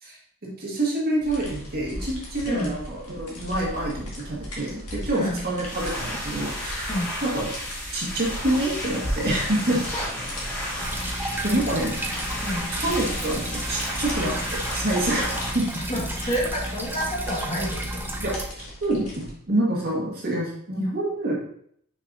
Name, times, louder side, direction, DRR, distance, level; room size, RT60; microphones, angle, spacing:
voice 1, 0.0-6.9 7.2-7.5 7.9-9.8 10.4-10.5 11.4-12.0 12.8-15.3 15.5-15.7 16.2-16.3 18.2-18.4 18.8-21.4, right 1 dB, 45° right, -4 dB, 1.8 m, -27 dB
sound 1, 1.2-19.3, equal, 75° left, 2.0 m, -38 dB
voice 2, 2.5-2.8 5.1-5.4 6.9-7.1 9.9-10.1 11.7-11.8 12.4-12.7 15.7-18.0, equal, 30° left, -4 dB, 1.7 m, -29 dB
sound 2, 5.6-15.5, equal, 5° left, 2.2 m, -33 dB
sound 3, 10.8-18.4, right 1 dB, 10° right, 0.6 m, -32 dB
6.1 x 5.7 x 2.7 m, 0.67 s
head